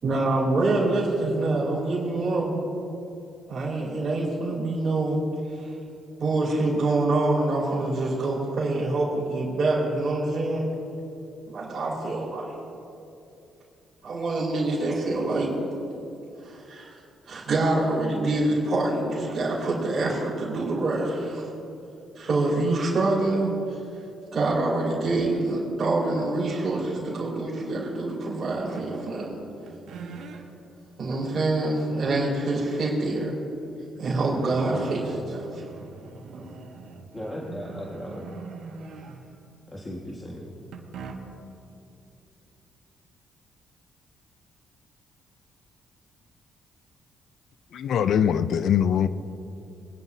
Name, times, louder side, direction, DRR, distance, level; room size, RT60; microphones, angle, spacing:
voice 1, 0.0-2.7 3.5-5.2 5.5-5.7 6.2-10.7 11.5-12.5 14.0-15.6 16.4-17.0 17.2-21.5 22.1-23.8 24.3-29.4 31.0-33.3 34.0-35.6 36.3-36.5 38.8-39.0, right 2 dB, 45° right, 3.2 m, -26 dB
sound 1, 28.7-29.4 29.7-30.4 31.1-31.2 33.3-33.4 33.7-39.5 40.7-41.5, right 4 dB, 75° right, 1.2 m, -42 dB
voice 2, 37.1-38.4 39.7-40.6, left 1 dB, 20° left, 1.6 m, -37 dB
voice 3, 47.7-49.1, left 8 dB, 70° left, 0.4 m, -22 dB
22.5 x 10.5 x 2.7 m
cardioid pair, 90°, 0 cm